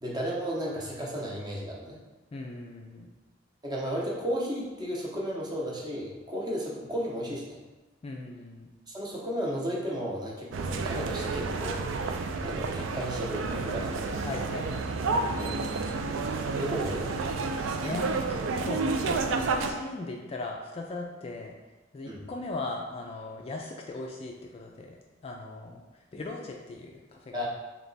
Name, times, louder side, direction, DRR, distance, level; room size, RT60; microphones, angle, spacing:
voice 1, 0.0-2.0 3.6-7.6 8.9-11.8 12.4-14.5 15.4-15.6 16.6-17.2 22.1-22.3 27.3-27.5, equal, 20° right, -3 dB, 0.7 m, -34 dB
voice 2, 2.3-3.1 8.0-8.7 14.2-16.1 17.0-17.1 17.8-18.3 18.6-21.5 21.9-25.0 25.2-25.8 26.1-27.5, left 2 dB, 30° left, 0 dB, 0.3 m, -38 dB
sound 1, 10.5-19.7, right 4 dB, 75° right, 0.4 m, -30 dB
3.3 x 2.9 x 4.0 m, 1.1 s
head